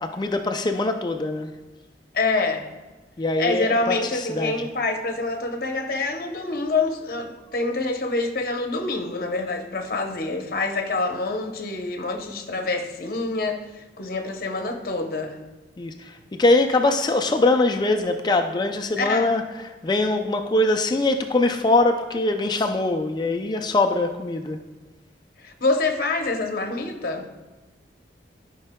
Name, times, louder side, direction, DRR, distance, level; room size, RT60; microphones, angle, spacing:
voice 1, 0.0-1.5 3.2-4.7 15.8-19.4 19.8-24.6, left 2 dB, 25° left, 5 dB, 0.3 m, -22 dB
voice 2, 2.1-2.7 3.4-15.4 19.0-19.3 25.4-27.3, left 3 dB, 55° left, 4 dB, 0.8 m, -26 dB
12.5 x 5.3 x 2.2 m, 1.2 s
head